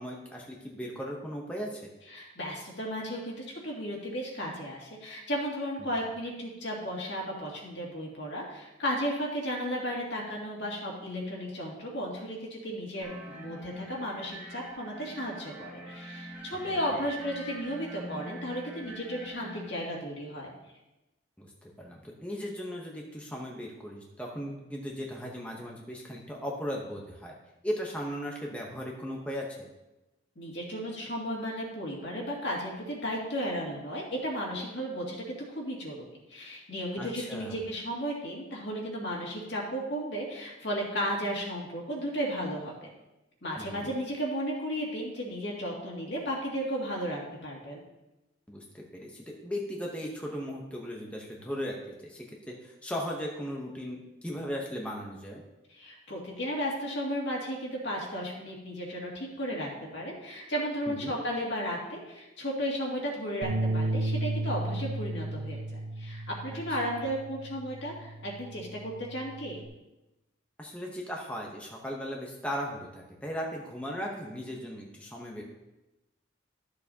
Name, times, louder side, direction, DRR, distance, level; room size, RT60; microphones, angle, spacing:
voice 1, 0.0-1.9 21.4-27.3 27.6-29.7 37.0-37.5 43.6-43.9 48.5-51.7 52.0-55.4 60.9-61.1 66.5-66.6 70.6-75.4, equal, 5° left, -2 dB, 0.8 m, -37 dB
voice 2, 2.1-20.5 30.4-36.0 36.3-42.9 43.4-47.8 55.7-69.6, equal, 60° left, -3 dB, 2.2 m, -34 dB
sound 1, 13.0-19.7, right 1 dB, 10° right, 1.3 m, -44 dB
sound 2, 63.4-69.7, right 2 dB, 75° right, 1.5 m, -34 dB
13.0 x 6.8 x 2.8 m, 0.99 s
head